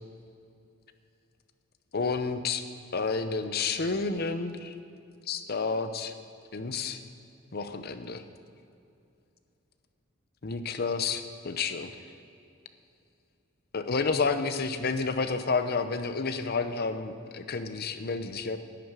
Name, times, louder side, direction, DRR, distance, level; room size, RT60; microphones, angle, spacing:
voice 1, 1.9-2.6 2.9-4.7 5.3-6.1 6.5-7.0 7.5-8.2 10.4-11.9 13.7-18.6, left 4 dB, 50° left, 9 dB, 0.8 m, -30 dB
11.0 x 8.0 x 9.0 m, 2.7 s
head